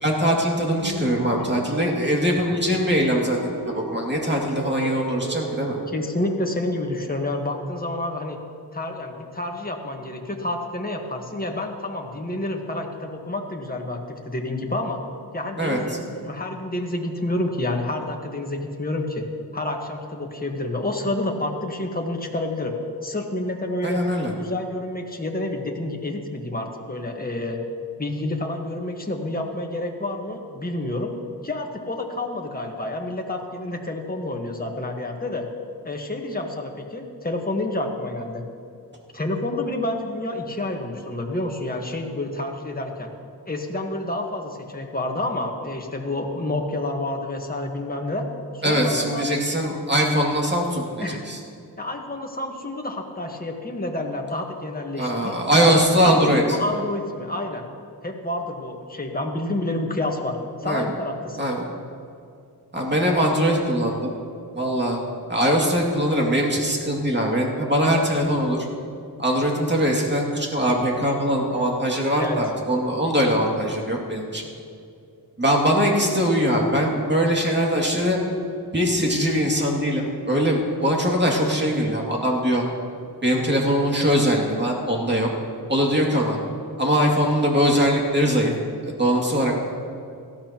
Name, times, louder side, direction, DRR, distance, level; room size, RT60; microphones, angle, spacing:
voice 1, 0.0-5.8 15.6-15.8 23.8-24.3 48.6-51.4 55.0-56.4 60.6-60.9 61.4-61.7 62.7-64.1 64.5-65.0 65.3-68.6 69.2-74.5 75.4-78.2 78.7-82.6 83.2-85.3 85.7-86.4 86.8-88.5 88.8-89.5, equal, 25° right, -1 dB, 2.5 m, -21 dB
sound 1, 0.8-6.1, right 1 dB, 60° right, 1.9 m, -35 dB
voice 2, 5.9-8.4 8.7-15.0 15.3-19.2 19.5-22.7 23.0-24.0 24.4-27.6 28.0-31.1 31.4-35.4 35.8-38.4 39.1-43.1 43.5-48.3 48.5-49.3 51.0-51.2 51.8-55.4 56.0-57.6 58.0-61.5 72.2-72.4, left 2 dB, 25° left, 2 dB, 1.4 m, -29 dB
17.5 x 13.5 x 3.0 m, 2.5 s
wide cardioid pair, 75°, 39 cm